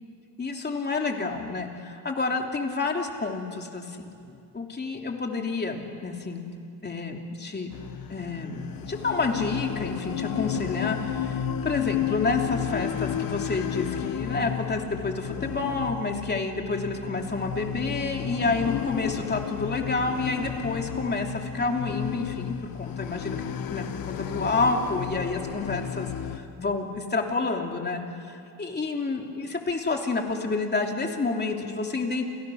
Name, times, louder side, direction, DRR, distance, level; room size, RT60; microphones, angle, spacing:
voice 1, 0.4-6.4 6.8-7.7 8.1-26.1 26.6-32.3, left 3 dB, 25° left, 2 dB, 3.1 m, -29 dB
sound 1, 7.7-26.4, left 9 dB, 55° left, 1.4 m, -32 dB
29.5 x 28.5 x 6.5 m, 2.5 s
cardioid pair, 120°, 42 cm